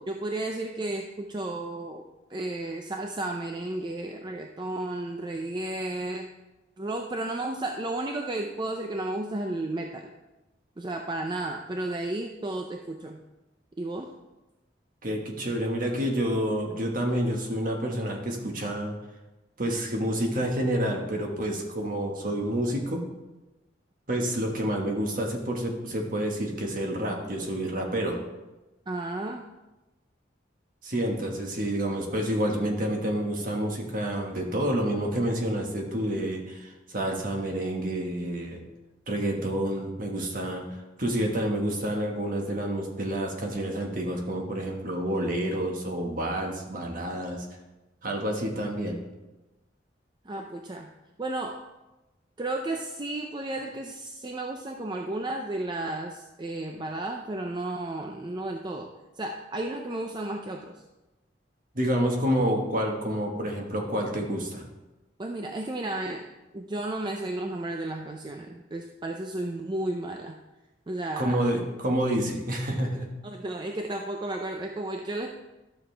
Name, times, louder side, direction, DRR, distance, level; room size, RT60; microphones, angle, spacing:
voice 1, 0.0-2.0 2.3-6.3 6.8-10.1 10.8-13.2 13.8-14.1 28.9-29.5 50.2-50.9 51.2-51.6 52.4-60.8 65.2-66.3 66.5-70.4 70.9-71.4 72.7-72.8 73.2-75.3, right 2 dB, 25° right, 3 dB, 0.5 m, -33 dB
voice 2, 15.0-19.0 19.6-23.0 24.1-28.2 30.8-38.6 39.1-40.6 41.0-47.4 48.0-49.0 61.7-64.6 71.2-73.1, right 1 dB, 50° right, 1 dB, 1.5 m, -28 dB
12.0 x 6.8 x 3.4 m, 1.1 s
head